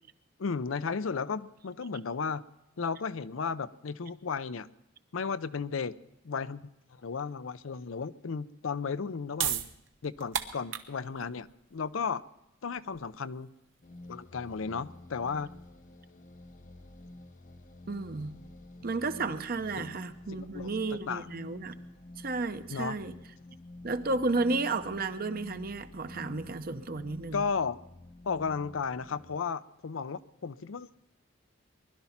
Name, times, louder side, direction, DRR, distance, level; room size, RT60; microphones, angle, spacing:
voice 1, 0.4-2.4 2.8-4.7 5.1-6.0 6.2-9.7 10.0-12.2 12.6-13.5 14.1-15.5 19.8-19.9 20.3-21.3 22.7-23.0 27.3-27.8 28.2-30.9, left 5 dB, 85° left, 14 dB, 0.5 m, -34 dB
sound 1, 9.1-15.7, right 9 dB, 75° right, 1.1 m, -38 dB
sound 2, 13.8-29.4, left 1 dB, 40° left, 0.6 m, -49 dB
voice 2, 17.9-18.4 18.8-21.7 22.2-23.1 23.8-27.4, right 3 dB, 50° right, 10 dB, 0.8 m, -32 dB
20.5 x 12.0 x 5.8 m, 0.86 s
head